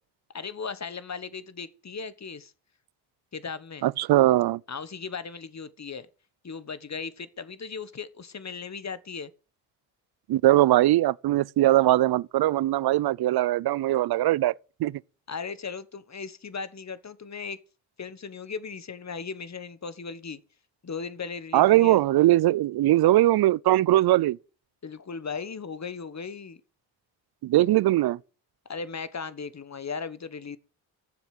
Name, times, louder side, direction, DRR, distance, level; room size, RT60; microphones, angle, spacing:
voice 1, 0.3-2.5 3.3-3.9 4.7-6.1 6.4-9.3 15.3-17.6 18.0-20.4 20.8-22.0 24.8-26.6 28.7-30.6, left 5 dB, 35° left, 1.2 m, -37 dB
voice 2, 3.8-4.6 10.3-14.5 14.8-15.0 21.5-24.4 27.4-28.2, right 15 dB, 55° right, 0.5 m, -21 dB
9.9 x 7.3 x 7.7 m
supercardioid pair, 45°, 46 cm